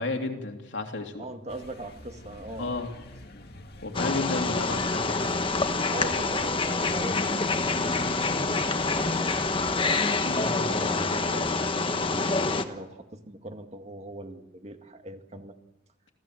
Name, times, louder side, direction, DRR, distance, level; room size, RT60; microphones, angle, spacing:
voice 1, 0.0-1.3 2.6-2.9 3.8-5.4 10.3-10.7, left 3 dB, 70° left, 3 dB, 3.0 m, -32 dB
voice 2, 1.2-2.8 5.9-7.6 8.0-9.5 9.9-10.0 10.6-15.6, right 1 dB, 35° right, 6 dB, 2.0 m, -40 dB
sound 1, 1.5-10.0, left 1 dB, 55° left, 2.3 m, -45 dB
Wild animals, 3.9-12.6, left 3 dB, 25° left, 1.2 m, -26 dB
27.5 x 16.5 x 7.7 m, 0.99 s
head